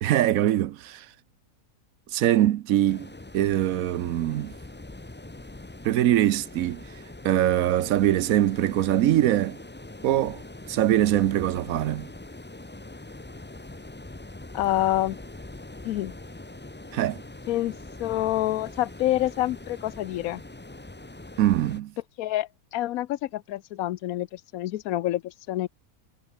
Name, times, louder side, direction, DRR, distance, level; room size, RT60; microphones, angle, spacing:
voice 1, 0.0-1.1 2.1-4.5 5.8-6.8 7.2-9.6 10.0-10.4 10.7-12.1 16.9-17.2 21.4-21.9, right 13 dB, 70° right, 1.0 m, -23 dB
sound 1, 2.9-21.8, left 2 dB, 15° left, 0.3 m, -43 dB
voice 2, 14.5-15.2 15.8-16.1 17.5-20.4 22.2-25.7, left 14 dB, 75° left, 1.0 m, -27 dB
omnidirectional pair, 1.6 m